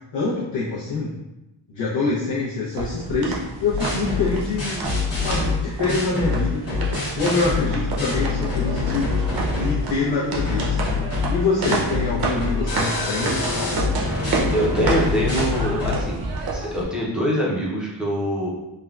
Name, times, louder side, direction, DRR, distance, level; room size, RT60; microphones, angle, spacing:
voice 1, 0.1-1.2 1.7-4.9 5.2-6.6 7.2-10.8 11.3-13.8, left 3 dB, 75° left, -9 dB, 0.7 m, -25 dB
sound 1, 2.7-16.8, right 3 dB, 50° right, 0.6 m, -30 dB
sound 2, 3.7-9.9 10.3-16.0, left 4 dB, 30° left, 0.9 m, -25 dB
voice 2, 14.5-16.2 16.5-18.5, equal, ahead, -6 dB, 0.4 m, -24 dB
3.5 x 2.2 x 2.3 m, 0.97 s
wide cardioid pair, 170°, 46 cm